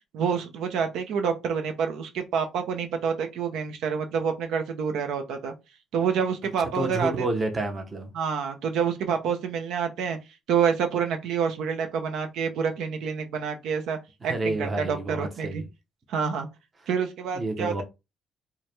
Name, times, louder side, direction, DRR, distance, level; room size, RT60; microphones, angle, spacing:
voice 1, 0.1-5.5 5.9-7.3 8.1-10.2 10.5-14.0 14.2-15.6 16.1-16.5 16.9-17.8, right 6 dB, 75° right, 0.6 m, -27 dB
voice 2, 6.7-8.1 14.2-15.7 17.3-17.8, right 2 dB, 20° right, 0.7 m, -29 dB
4.6 x 2.1 x 3.2 m
cardioid pair, 155°, 0 cm